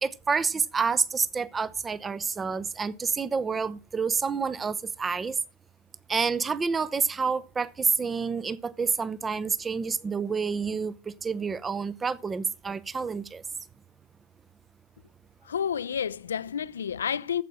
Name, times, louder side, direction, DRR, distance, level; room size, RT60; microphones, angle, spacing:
voice 1, 0.0-5.4 6.1-10.9 11.2-13.4, right 5 dB, 15° right, 0.7 m, -28 dB
voice 2, 15.4-17.4, left 8 dB, 65° left, 0.6 m, -30 dB
12.0 x 7.9 x 6.1 m
figure-of-eight pair, 90°, 0 cm